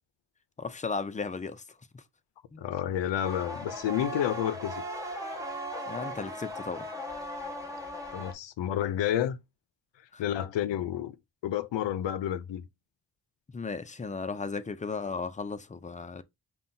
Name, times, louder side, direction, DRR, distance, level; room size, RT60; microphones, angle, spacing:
voice 1, 0.6-1.6 1.9-2.0 2.5-2.6 5.9-7.0 10.1-10.2 13.5-16.2, left 4 dB, 20° left, 0.4 m, -35 dB
voice 2, 2.6-4.8 8.1-9.4 10.2-11.1 11.4-12.6, left 11 dB, 85° left, 0.5 m, -30 dB
sound 1, 3.2-8.3, equal, 10° right, 1.3 m, -37 dB
5.4 x 2.3 x 2.6 m
cardioid pair, 60°, 42 cm